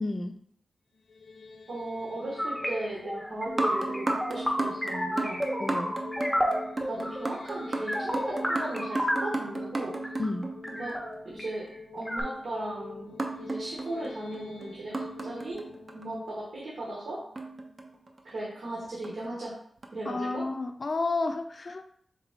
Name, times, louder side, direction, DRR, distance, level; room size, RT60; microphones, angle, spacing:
voice 1, 0.0-0.4 5.6-5.9 10.2-10.6 20.1-21.8, left 3 dB, 40° left, 7 dB, 0.4 m, -31 dB
sound 1, 0.9-18.1, left 4 dB, 90° left, 0.6 m, -46 dB
voice 2, 1.7-5.4 6.9-10.1 10.7-11.0 11.3-11.7 11.9-15.6 15.9-17.2 18.2-19.5 19.9-20.4, right 2 dB, 90° right, -5 dB, 1.3 m, -37 dB
sound 2, 2.4-9.5 10.0-10.3 10.6-11.5 12.1-12.2, equal, ahead, 0.6 m, -31 dB
sound 3, 3.5-11.1 13.2-16.1 17.4-18.4 19.0-19.3 19.8-19.9, right 2 dB, 40° right, 0.5 m, -35 dB
4.0 x 3.5 x 3.5 m, 0.64 s
wide cardioid pair, 145°, 0 cm